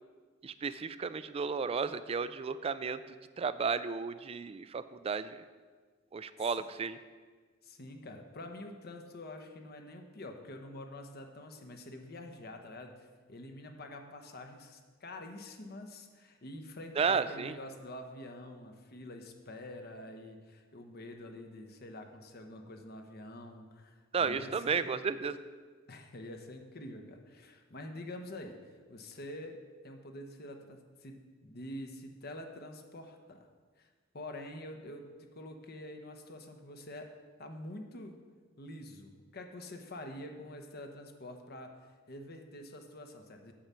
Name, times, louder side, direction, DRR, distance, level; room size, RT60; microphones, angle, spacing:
voice 1, 0.4-3.0 3.4-5.4 6.1-7.0 17.0-17.5 24.1-25.4, right 5 dB, 30° right, 14 dB, 0.4 m, -33 dB
voice 2, 7.6-24.9 25.9-28.6 28.9-33.5 33.8-33.9 34.1-37.1 37.4-38.2 38.6-41.8 42.1-43.5, left 1 dB, 55° left, 5 dB, 1.0 m, -46 dB
8.8 x 5.6 x 7.4 m, 1.5 s
head